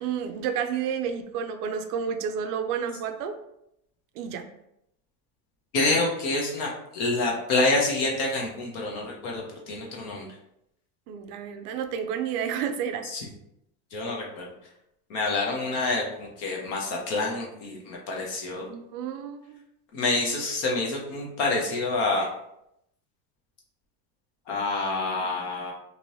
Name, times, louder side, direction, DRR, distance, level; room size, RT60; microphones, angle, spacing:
voice 1, 0.0-3.3 4.2-4.4 11.1-13.0 18.7-19.6, right 7 dB, 65° right, 7 dB, 0.5 m, -30 dB
voice 2, 5.7-10.3 13.1-13.2 13.9-14.4 15.1-18.7 19.9-22.3 24.5-25.7, left 2 dB, 35° left, -1 dB, 0.4 m, -27 dB
2.6 x 2.6 x 3.0 m, 0.79 s
supercardioid pair, 160°, 50 cm